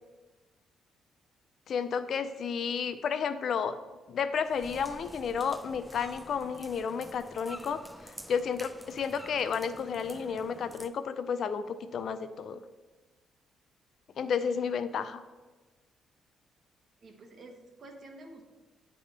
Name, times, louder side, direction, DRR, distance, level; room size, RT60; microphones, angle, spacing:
voice 1, 1.7-3.8 4.1-12.6 14.2-15.2, left 6 dB, 60° left, 12 dB, 0.4 m, -32 dB
sound 1, 4.4-10.9, equal, 5° right, 0.4 m, -48 dB
voice 2, 14.3-14.6 17.0-18.4, right 2 dB, 45° right, 3 dB, 1.2 m, -50 dB
9.8 x 3.5 x 3.9 m, 1.2 s
cardioid pair, 90°, 0 cm